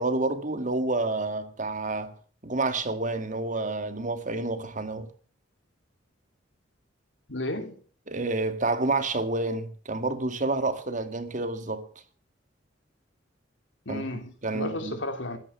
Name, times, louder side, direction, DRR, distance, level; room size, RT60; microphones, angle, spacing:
voice 1, 0.0-2.1 2.4-5.1 8.1-11.8 13.9-14.0 14.4-15.0, right 2 dB, 40° right, 2.0 m, -29 dB
voice 2, 7.3-7.8 13.8-15.4, left 1 dB, 70° left, 3.1 m, -33 dB
14.5 x 11.0 x 7.2 m
head